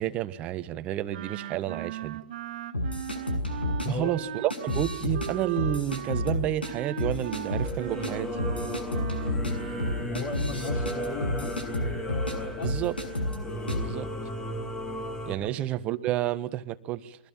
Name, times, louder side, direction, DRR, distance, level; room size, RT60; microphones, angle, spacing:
voice 1, 0.0-2.2 3.9-8.3 12.6-13.0 13.7-14.1 15.2-17.2, right 13 dB, 25° right, 12 dB, 1.3 m, -30 dB
Wind instrument woodwind instrument, 1.1-10.1, right 10 dB, 50° right, 1.9 m, -39 dB
sound 1, 2.7-3.9 4.5-5.3 5.6-6.7 7.0-7.7 8.0-8.1 8.4-12.4 12.6-13.4 13.7-13.9, left 1 dB, 85° left, 7.1 m, -30 dB
Singing / Musical instrument, 7.6-15.4, left 1 dB, 10° left, 2.3 m, -35 dB
voice 2, 10.0-11.6 12.6-12.7 15.4-15.5, left 3 dB, 35° left, 6 dB, 4.1 m, -35 dB
29.0 x 24.0 x 7.3 m, 0.71 s
figure-of-eight pair, 120°, 5 cm